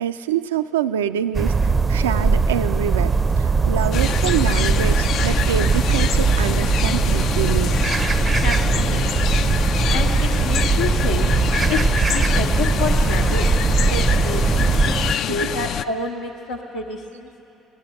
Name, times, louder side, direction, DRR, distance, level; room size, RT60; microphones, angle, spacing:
voice 1, 0.0-7.7 15.3-15.4, right 10 dB, 90° right, 11 dB, 0.3 m, -26 dB
sound 1, 1.3-15.1, right 4 dB, 30° right, 0.4 m, -20 dB
sound 2, 3.9-15.8, left 9 dB, 60° left, 0.4 m, -26 dB
voice 2, 8.4-9.5 9.9-11.3 11.7-13.5 13.9-17.3, left 4 dB, 90° left, -3 dB, 0.9 m, -29 dB
17.0 x 12.0 x 6.9 m, 2.9 s
hypercardioid pair, 60°, 0 cm